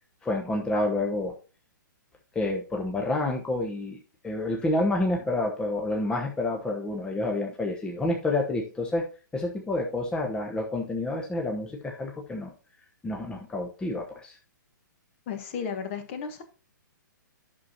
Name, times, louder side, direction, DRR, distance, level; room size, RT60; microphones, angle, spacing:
voice 1, 0.2-1.3 2.3-4.0 4.2-9.0 9.3-12.5 13.0-14.4, left 2 dB, 10° left, 1 dB, 0.9 m, -29 dB
voice 2, 15.3-16.4, left 6 dB, 40° left, 8 dB, 1.4 m, -34 dB
11.0 x 6.2 x 2.8 m, 0.35 s
figure-of-eight pair, 120°, 11 cm